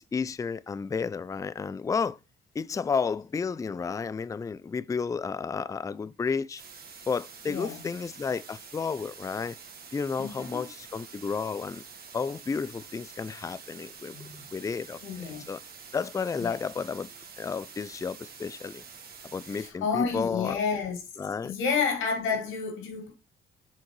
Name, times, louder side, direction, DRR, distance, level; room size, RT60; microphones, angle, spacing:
voice 1, 0.0-2.2 2.6-6.6 7.1-9.6 9.9-11.8 12.1-14.2 14.5-15.0 15.5-15.6 15.9-17.1 17.4-18.8 19.3-20.6 21.2-21.5, left 5 dB, 15° left, 0.3 m, -32 dB
sound 1, 6.6-19.7, right 6 dB, 50° right, 1.9 m, -47 dB
voice 2, 7.5-7.8 10.2-10.7 14.1-14.5 15.0-15.4 16.4-16.6 19.6-21.0 21.4-23.1, left 5 dB, 90° left, 2.1 m, -30 dB
7.3 x 3.7 x 4.6 m
cardioid pair, 90°, 20 cm